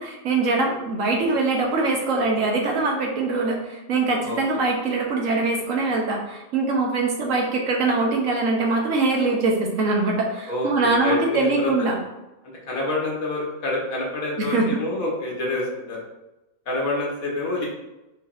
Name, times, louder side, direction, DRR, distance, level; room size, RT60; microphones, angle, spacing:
voice 1, 0.0-12.0 14.4-14.8, right 3 dB, 70° right, 0 dB, 1.3 m, -23 dB
voice 2, 4.2-4.6 10.5-11.9 12.7-16.0 16.7-17.7, left 2 dB, 85° left, -3 dB, 1.6 m, -27 dB
4.6 x 4.0 x 2.5 m, 0.97 s
omnidirectional pair, 1.4 m